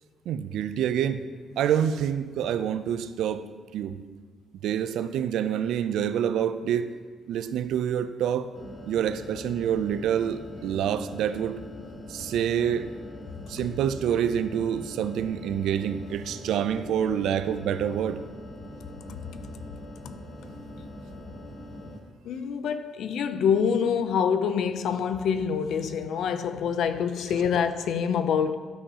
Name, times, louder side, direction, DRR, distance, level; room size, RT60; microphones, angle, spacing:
voice 1, 0.3-1.2 1.6-3.5 3.7-4.0 4.6-6.9 7.3-8.5 8.9-11.6 12.1-12.9 13.5-18.2, right 9 dB, 80° right, 0.4 m, -27 dB
sound 1, 8.5-22.0, left 1 dB, 50° left, 1.2 m, -42 dB
voice 2, 22.2-28.6, left 7 dB, 75° left, 0.5 m, -26 dB
12.0 x 5.4 x 2.8 m
cardioid pair, 90°, 0 cm